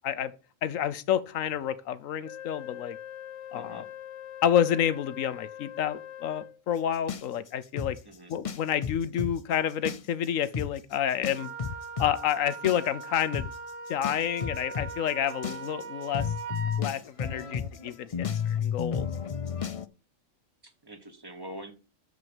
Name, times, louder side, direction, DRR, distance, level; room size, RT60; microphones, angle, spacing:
voice 1, 0.6-3.0 3.5-3.8 4.4-8.0 8.3-11.5 12.0-13.5 13.9-16.3 16.8-19.1, left 9 dB, 90° left, 1.2 m, -29 dB
Wind instrument woodwind instrument, 2.2-6.6, left 10 dB, 65° left, 1.0 m, -43 dB
voice 2, 3.5-3.8 8.0-8.3 20.6-21.7, right 1 dB, 20° right, 1.5 m, -44 dB
sound 1, 7.1-9.3 9.7-10.3 10.5-10.7 11.2-19.9, left 7 dB, 45° left, 0.4 m, -32 dB
Wind instrument woodwind instrument 2, 11.3-16.8, right 4 dB, 75° right, 1.2 m, -40 dB
7.3 x 6.4 x 7.0 m
omnidirectional pair, 1.3 m